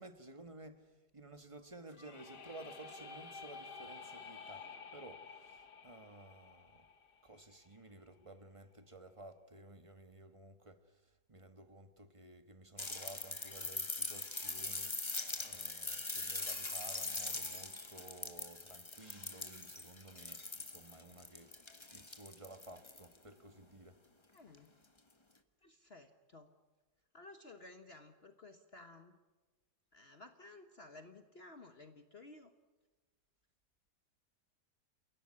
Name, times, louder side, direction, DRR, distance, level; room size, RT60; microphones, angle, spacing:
voice 1, 0.0-6.9 7.2-21.6 21.9-24.0, right 2 dB, 20° right, 1.5 m, -55 dB
sound 1, 1.9-7.7, left 4 dB, 80° left, 2.1 m, -52 dB
sound 2, 12.8-23.2 24.5-24.6, left 2 dB, 20° left, 1.4 m, -42 dB
voice 2, 24.3-24.7 25.6-26.5 27.1-29.2 29.9-32.5, left 2 dB, 40° left, 1.5 m, -55 dB
29.5 x 17.5 x 9.8 m
omnidirectional pair, 1.7 m